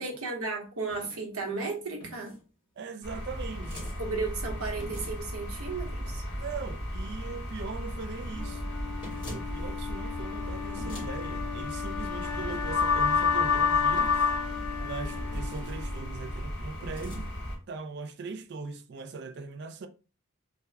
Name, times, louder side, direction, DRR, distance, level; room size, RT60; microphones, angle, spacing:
voice 1, 0.0-2.3 3.7-6.2, right 3 dB, 80° right, 0.9 m, -34 dB
sound 1, 0.9-1.2 2.0-2.4 3.6-4.0 4.8-5.3 9.0-9.5 10.8-11.1 12.5-12.9 14.0-14.4 15.3-15.8 16.8-17.2, equal, 20° left, 1.5 m, -44 dB
voice 2, 2.8-3.9 6.4-8.6 9.3-14.1 14.8-17.3 17.7-19.9, right 4 dB, 50° right, 0.3 m, -40 dB
sound 2, 3.0-17.5, left 3 dB, 50° left, 1.1 m, -32 dB
Wind instrument woodwind instrument, 8.3-16.4, left 7 dB, 90° left, 0.6 m, -36 dB
3.4 x 2.1 x 3.3 m
head